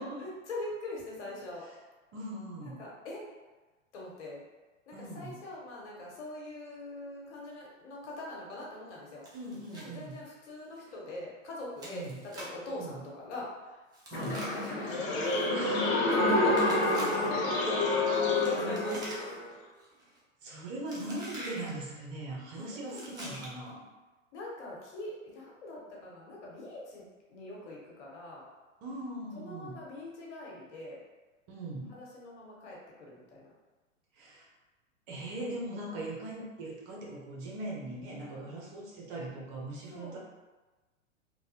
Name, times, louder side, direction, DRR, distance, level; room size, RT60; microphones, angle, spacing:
voice 1, 0.0-1.6 2.6-3.2 3.9-4.4 4.9-9.3 9.7-13.8 14.1-15.2 16.0-16.5 16.8-17.0 17.5-19.0 22.5-23.4 24.3-28.4 29.3-31.0 31.9-33.5 38.3-38.6 39.9-40.2, left 2 dB, 60° left, -3 dB, 1.1 m, -43 dB
voice 2, 2.1-2.8 4.9-5.4 9.3-10.2 11.8-12.2 12.7-13.0 14.1-14.4 15.5-16.3 20.4-23.8 28.8-29.8 31.5-31.9 34.1-34.5 35.1-40.2, right 1 dB, 40° right, -3 dB, 0.8 m, -40 dB
Chewing mastication, 9.2-9.9 10.2-10.3 10.8-10.9 11.8-12.6 13.9-15.5 16.5-17.5 18.3-19.5 19.8-20.2 20.9-21.7 22.8-23.7, right 1 dB, 10° right, 0.4 m, -45 dB
sound 1, 14.1-19.5, left 2 dB, 35° left, 0.6 m, -28 dB
3.0 x 2.2 x 2.7 m, 1.2 s
hypercardioid pair, 115°, 39 cm